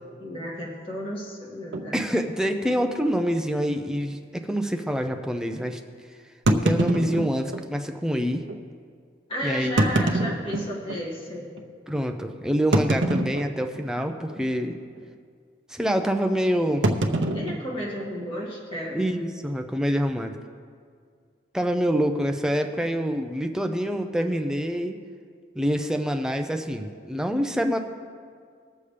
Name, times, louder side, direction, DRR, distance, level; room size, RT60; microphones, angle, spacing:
voice 1, 0.2-1.9 9.3-11.5 17.3-19.0, equal, 30° left, -4 dB, 2.1 m, -33 dB
sound 1, 1.7-1.9 2.6-2.8 3.1-3.2 3.8-3.9 6.5-7.7 8.5-8.6 9.6-11.0 11.6-11.7 12.7-13.8 14.1-14.5 14.7-15.0 16.8-18.5, right 1 dB, 85° right, 0.7 m, -25 dB
voice 2, 1.9-5.8 6.6-8.4 9.4-9.7 11.9-14.7 15.7-16.9 18.9-20.4 21.5-25.0 25.6-27.8, equal, 5° right, 4 dB, 0.5 m, -26 dB
20.0 x 7.0 x 3.4 m, 2.1 s
head